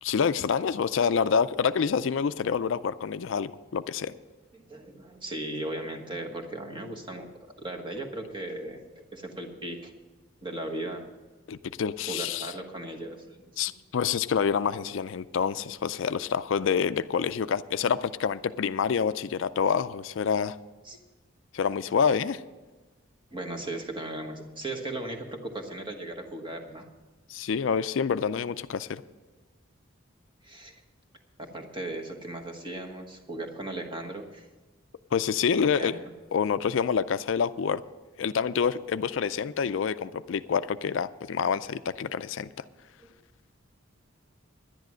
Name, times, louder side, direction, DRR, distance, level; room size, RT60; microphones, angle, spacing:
voice 1, 0.0-4.1 11.5-12.5 13.6-20.6 21.5-22.4 27.3-29.0 35.1-35.9 36.3-37.8 38.2-42.5, left 6 dB, 65° left, 13 dB, 0.4 m, -27 dB
voice 2, 4.5-7.3 7.6-8.8 9.1-9.9 10.4-11.1 12.1-13.5 20.8-21.0 23.3-26.9 30.4-30.8 31.4-34.5 35.6-36.1 39.6-39.8 43.0-43.1, right 1 dB, 25° right, 2 dB, 1.3 m, -37 dB
10.5 x 10.5 x 6.2 m, 1.2 s
head